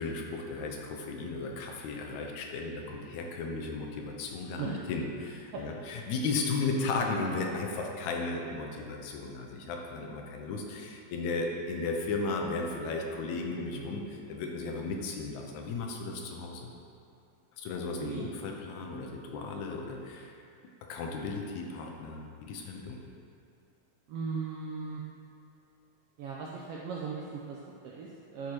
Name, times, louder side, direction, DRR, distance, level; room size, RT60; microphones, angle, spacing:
voice 1, 0.0-16.7 17.6-20.4 20.9-23.0, left 3 dB, 80° left, 1 dB, 2.1 m, -35 dB
voice 2, 18.0-18.4 24.1-25.0 26.2-28.5, right 5 dB, 85° right, -3 dB, 1.4 m, -38 dB
10.5 x 4.8 x 2.9 m, 2.6 s
omnidirectional pair, 3.3 m